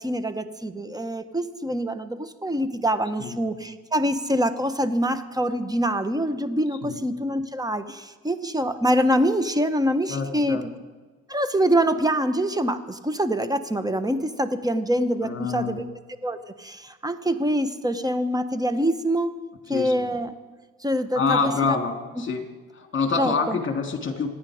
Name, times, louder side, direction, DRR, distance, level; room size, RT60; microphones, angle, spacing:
voice 1, 0.0-10.6 11.3-15.9 16.2-19.3 19.7-20.3 20.8-21.8 23.2-23.6, equal, 10° right, 11 dB, 1.1 m, -25 dB
voice 2, 10.1-10.6 15.2-15.8 19.7-20.1 21.1-22.4 22.7-24.3, left 5 dB, 40° left, 4 dB, 2.8 m, -26 dB
26.0 x 9.8 x 5.0 m, 1.3 s
cardioid pair, 90°, 30 cm